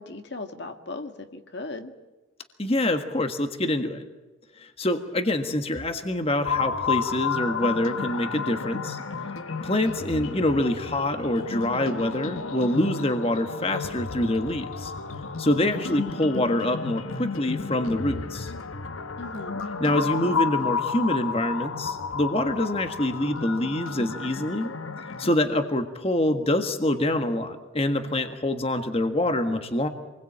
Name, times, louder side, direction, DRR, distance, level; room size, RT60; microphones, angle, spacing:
voice 1, 0.0-1.9 19.2-19.6, left 2 dB, 55° left, 6 dB, 1.8 m, -37 dB
voice 2, 2.6-4.0 4.6-9.0 9.6-14.9 15.4-18.5 19.8-24.7 25.2-29.9, left 1 dB, 30° left, 6 dB, 1.6 m, -25 dB
sound 1, 6.4-25.3, left 5 dB, 90° left, 1.2 m, -32 dB
27.5 x 21.0 x 8.7 m, 1.2 s
head